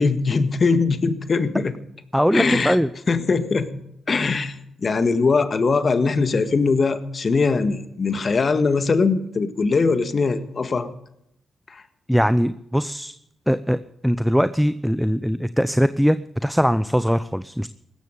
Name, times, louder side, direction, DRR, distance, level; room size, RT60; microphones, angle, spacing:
voice 1, 0.0-1.7 2.3-2.8 3.1-3.7 4.1-10.9 11.7-11.8, left 4 dB, 50° left, 11 dB, 1.7 m, -21 dB
voice 2, 2.1-2.9 12.1-13.1 13.5-16.2 16.4-17.7, equal, ahead, 14 dB, 0.7 m, -21 dB
16.5 x 13.5 x 5.2 m, 0.78 s
hypercardioid pair, 45°, 0 cm